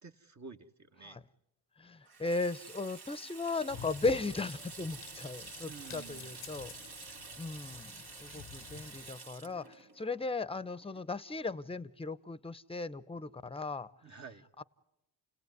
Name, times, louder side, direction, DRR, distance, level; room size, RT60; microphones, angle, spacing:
voice 1, 0.0-1.2 5.6-6.4 14.0-14.5, right 5 dB, 40° right, 1.4 m, -50 dB
voice 2, 1.8-14.2 14.6-14.7, left 3 dB, 15° left, 0.8 m, -37 dB
Water tap faucet / Sink (filling or washing), 2.0-11.4, right 4 dB, 60° right, 1.8 m, -49 dB
sound 1, 3.7-9.1, left 8 dB, 90° left, 1.0 m, -51 dB
29.0 x 17.5 x 9.5 m
supercardioid pair, 45°, 44 cm